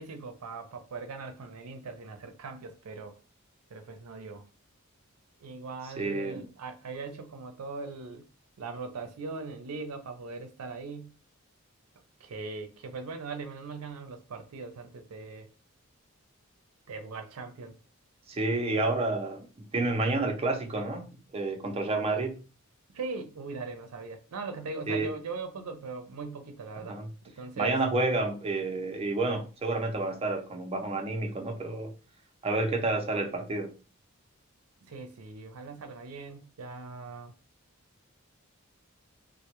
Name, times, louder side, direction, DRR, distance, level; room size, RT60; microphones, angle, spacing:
voice 1, 0.0-3.2 3.7-4.4 5.4-8.2 8.6-11.1 12.2-15.5 16.9-17.8 18.7-18.9 22.9-27.0 27.2-27.8 34.9-37.3, right 4 dB, 90° right, 0.5 m, -40 dB
voice 2, 6.0-6.5 18.3-22.4 24.9-25.1 26.7-27.1 27.6-31.9 32.4-33.7, right 2 dB, 25° right, 0.4 m, -30 dB
2.1 x 2.0 x 2.8 m
head